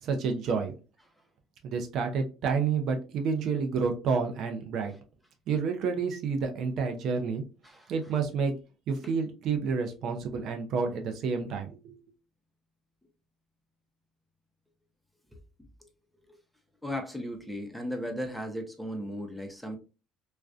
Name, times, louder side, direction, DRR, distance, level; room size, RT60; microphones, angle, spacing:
voice 1, 0.0-0.7 1.6-4.9 5.5-7.4 7.9-8.5 8.9-12.0, right 5 dB, 60° right, 0.5 m, -29 dB
voice 2, 16.8-19.8, equal, ahead, 0.6 m, -36 dB
2.4 x 2.2 x 2.3 m
supercardioid pair, 85°, 0 cm